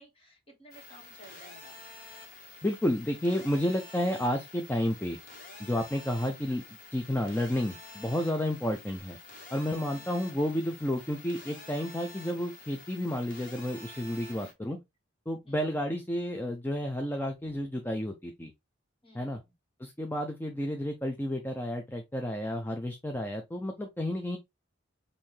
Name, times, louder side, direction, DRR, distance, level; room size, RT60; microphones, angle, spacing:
voice 1, 0.0-1.8 8.8-9.0 9.9-10.1 14.4-14.7 15.4-15.5 19.0-19.5, right 1 dB, 25° left, 1.6 m, -56 dB
sound 1, 0.7-14.5, left 3 dB, 40° left, 1.5 m, -49 dB
voice 2, 2.6-5.2 5.6-6.6 6.9-9.2 9.5-14.8 15.3-18.5 19.1-19.4 19.8-24.4, left 1 dB, 10° left, 0.4 m, -31 dB
5.5 x 2.7 x 3.2 m
head